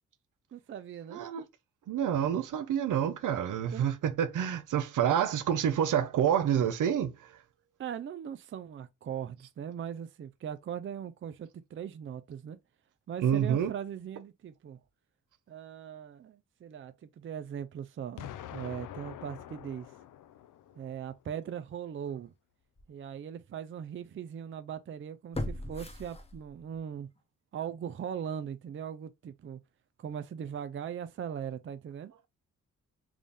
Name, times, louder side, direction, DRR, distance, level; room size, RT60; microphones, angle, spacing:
voice 1, 0.5-1.3 3.7-3.8 7.8-12.6 13.1-14.8 15.5-19.9 20.8-22.3 22.9-27.1 27.5-29.6 30.0-32.1, right 8 dB, 40° right, 0.5 m, -40 dB
voice 2, 1.1-1.4 1.9-7.1 13.2-13.7, right 9 dB, 70° right, 0.7 m, -28 dB
Explosion, 18.2-21.1, left 11 dB, 75° left, 0.5 m, -45 dB
sound 1, 22.1-22.2 22.8-22.9 25.3-26.8 27.2-27.3, left 1 dB, 20° left, 0.9 m, -38 dB
3.7 x 2.5 x 3.4 m
cardioid pair, 60°, 32 cm